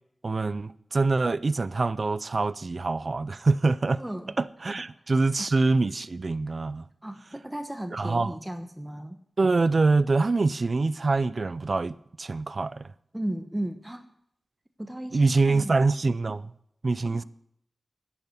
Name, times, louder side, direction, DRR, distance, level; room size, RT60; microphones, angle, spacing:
voice 1, 0.2-4.0 4.4-6.9 7.9-8.3 9.4-12.9 15.1-16.5 16.8-17.2, right 3 dB, 50° right, 0.5 m, -25 dB
voice 2, 4.0-4.3 7.0-9.2 13.1-14.1 14.8-15.8 17.0-17.2, right 1 dB, 15° right, 1.1 m, -35 dB
11.0 x 8.4 x 9.7 m
wide cardioid pair, 70°, 0 cm